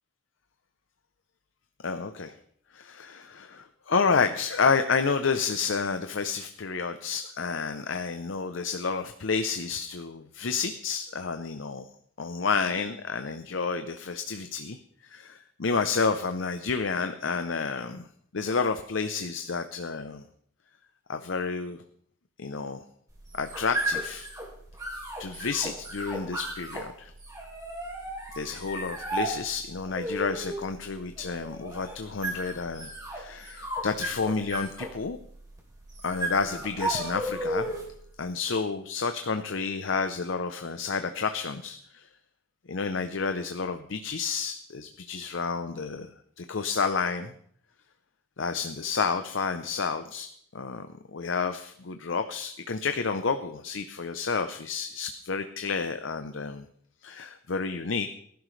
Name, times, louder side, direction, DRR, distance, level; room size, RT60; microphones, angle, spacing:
voice 1, 1.8-2.3 2.7-11.9 12.2-14.8 15.0-18.1 18.3-20.2 21.1-21.8 22.4-22.8 23.3-24.3 25.2-27.1 28.3-35.2 36.0-37.7 38.2-42.1 42.7-46.1 46.4-47.3 48.4-50.3 50.5-56.7 57.0-58.1, left 5 dB, 70° left, 8 dB, 0.7 m, -30 dB
sound 1, 23.1-38.0, right 1 dB, 20° right, 3.3 m, -35 dB
19.0 x 11.5 x 3.2 m, 0.65 s
head